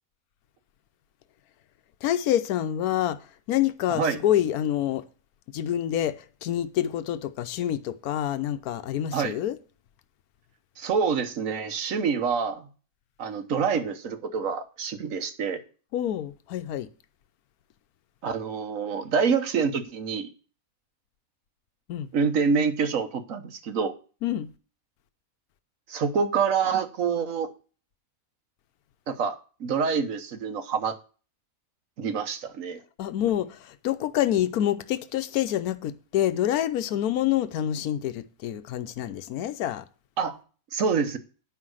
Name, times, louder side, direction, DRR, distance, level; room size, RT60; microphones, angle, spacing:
voice 1, 2.0-3.2 3.5-5.0 5.5-6.2 6.4-9.6 15.9-16.9 21.9-22.1 24.2-24.5 33.0-39.8, left 11 dB, 80° left, 1.2 m, -27 dB
voice 2, 3.9-4.2 9.1-9.3 10.8-12.7 13.2-15.6 18.2-20.3 22.1-23.9 25.9-27.5 29.1-31.0 32.0-32.8 40.2-40.4 40.7-41.2, right 6 dB, 65° right, 1.4 m, -26 dB
9.7 x 5.8 x 6.3 m
omnidirectional pair, 1.5 m